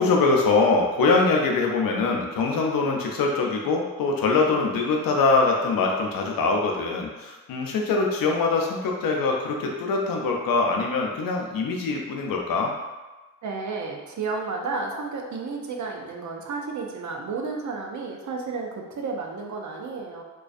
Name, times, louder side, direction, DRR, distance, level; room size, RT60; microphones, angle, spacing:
voice 1, 0.0-12.7, left 3 dB, 80° left, 0 dB, 0.5 m, -23 dB
voice 2, 13.4-20.2, right 4 dB, 60° right, 1 dB, 0.5 m, -32 dB
2.3 x 2.2 x 2.4 m, 1.2 s
cardioid pair, 45°, 34 cm